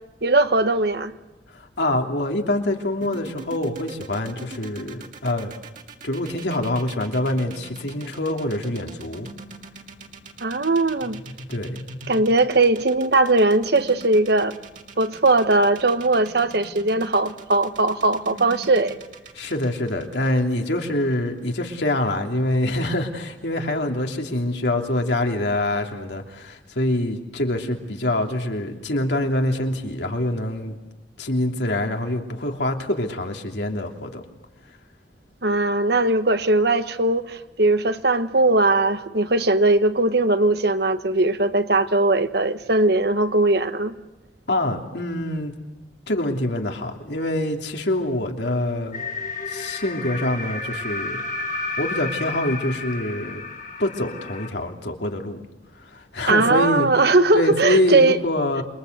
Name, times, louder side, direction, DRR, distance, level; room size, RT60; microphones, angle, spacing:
voice 1, 0.2-1.1 10.4-11.2 12.1-14.6 15.0-18.9 35.4-43.9 56.3-58.2, right 2 dB, 65° right, 1.3 m, -19 dB
voice 2, 1.5-5.5 6.0-9.3 11.5-11.8 19.3-30.7 31.2-34.2 44.5-45.5 46.1-49.0 49.5-51.2 51.8-53.4 53.8-55.4 55.9-56.9 57.3-58.6, left 1 dB, 75° left, 3.0 m, -25 dB
sound 1, 3.0-21.1, right 3 dB, 45° right, 2.6 m, -41 dB
sound 2, 48.9-54.5, left 3 dB, 45° left, 2.1 m, -31 dB
28.0 x 24.0 x 8.0 m
head